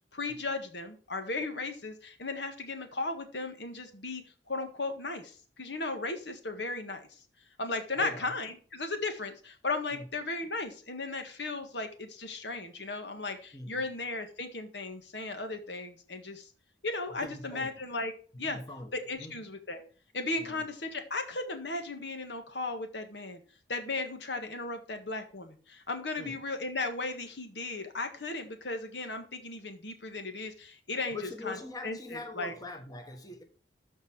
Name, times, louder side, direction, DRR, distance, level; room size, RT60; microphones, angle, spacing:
voice 1, 0.1-4.2 4.5-7.1 7.6-16.5 16.8-18.1 18.4-18.6 18.9-19.8 20.1-23.4 23.7-31.2 31.4-31.6 31.8-32.5, left 3 dB, 80° left, 1.8 m, -36 dB
voice 2, 8.0-8.3 9.9-10.1 13.5-13.9 17.2-17.7 18.4-19.4 20.4-20.6 26.2-26.4 31.1-33.4, left 2 dB, 20° left, 1.4 m, -43 dB
13.5 x 4.7 x 4.4 m
head